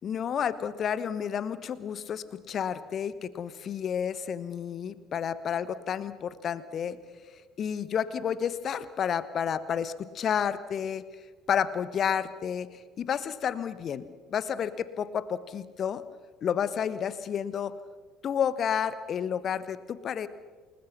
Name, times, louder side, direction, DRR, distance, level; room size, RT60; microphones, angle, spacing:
voice 1, 0.0-7.0 7.6-11.0 11.5-14.0 14.3-16.0 16.4-17.7 18.2-20.3, left 8 dB, 40° left, 15 dB, 1.2 m, -30 dB
28.0 x 20.5 x 6.1 m, 1.5 s
figure-of-eight pair, 55°, 0 cm